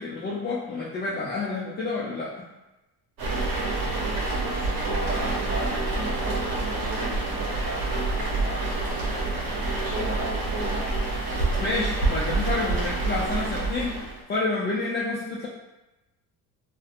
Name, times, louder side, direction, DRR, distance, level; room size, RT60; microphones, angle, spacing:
voice 1, 0.0-2.5 11.6-15.5, left 3 dB, 25° left, -5 dB, 0.4 m, -29 dB
sound 1, 3.2-14.2, right 2 dB, 55° right, 0.9 m, -27 dB
voice 2, 4.4-9.4 9.8-10.9, right 1 dB, 20° right, -8 dB, 1.2 m, -36 dB
2.7 x 2.1 x 2.4 m, 1.0 s
cardioid pair, 105°, 41 cm